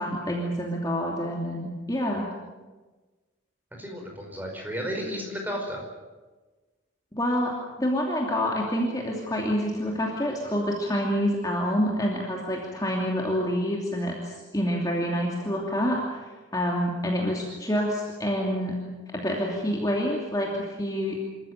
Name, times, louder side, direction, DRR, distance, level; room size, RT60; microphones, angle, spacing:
voice 1, 0.0-2.3 7.1-18.8 19.1-21.2, equal, 20° left, -2 dB, 2.8 m, -27 dB
voice 2, 3.8-5.8, equal, 10° right, 1 dB, 5.2 m, -33 dB
27.5 x 14.0 x 9.4 m, 1.3 s
head